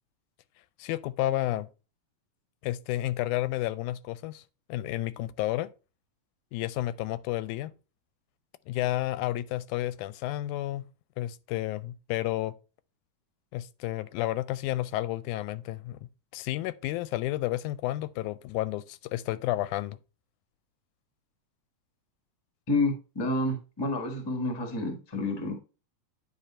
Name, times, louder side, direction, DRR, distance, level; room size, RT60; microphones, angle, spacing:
voice 1, 0.8-1.7 2.6-4.4 4.7-5.7 6.5-7.7 8.7-10.8 11.2-12.5 13.5-20.0, left 15 dB, 90° left, 2.0 m, -31 dB
voice 2, 22.7-25.6, left 2 dB, 25° left, 0.5 m, -29 dB
9.3 x 4.0 x 4.2 m
omnidirectional pair, 3.4 m